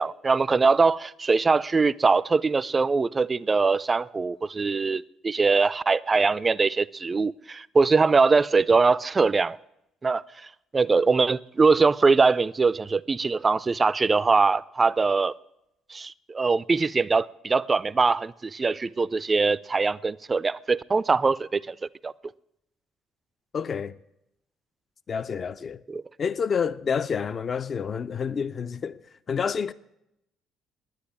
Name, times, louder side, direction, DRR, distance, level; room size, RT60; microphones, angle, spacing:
voice 1, 0.0-9.6 10.0-10.2 10.7-15.4 15.9-21.7 22.0-22.1 25.9-26.0, right 4 dB, 30° right, 0.4 m, -22 dB
voice 2, 23.5-24.0 25.1-25.8 26.2-29.0 29.3-29.7, left 6 dB, 40° left, 0.5 m, -28 dB
10.5 x 9.7 x 8.7 m
figure-of-eight pair, 50°, 0 cm